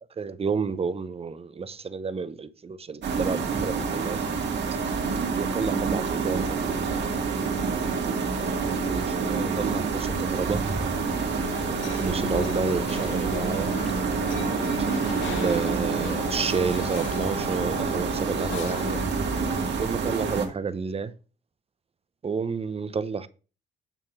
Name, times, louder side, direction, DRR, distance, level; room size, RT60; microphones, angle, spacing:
voice 1, 0.2-4.2 5.4-7.1 8.8-10.6 11.9-13.7 14.7-19.0 19.8-21.1 22.2-23.3, right 5 dB, 30° right, 0.7 m, -30 dB
sound 1, 3.0-20.5, right 5 dB, 60° right, 2.1 m, -27 dB
sound 2, 10.7-19.7, left 9 dB, 75° left, 0.8 m, -37 dB
9.1 x 3.7 x 6.0 m
cardioid pair, 90°, 20 cm